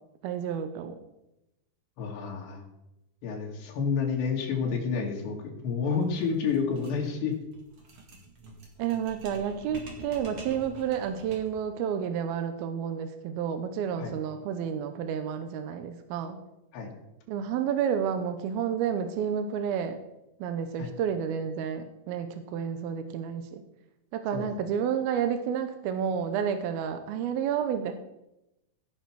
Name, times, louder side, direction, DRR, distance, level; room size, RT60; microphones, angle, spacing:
voice 1, 0.2-1.0 8.8-16.4 17.3-20.0 20.4-23.6 24.1-27.9, right 8 dB, 75° right, 8 dB, 2.4 m, -30 dB
voice 2, 2.0-2.6 3.2-7.4 14.0-14.1 16.7-16.9 20.8-20.9 24.3-24.5, left 5 dB, 80° left, -1 dB, 4.2 m, -29 dB
sound 1, 5.9-11.7, right 2 dB, 45° right, 2.3 m, -47 dB
16.5 x 5.8 x 6.2 m, 0.91 s
omnidirectional pair, 4.9 m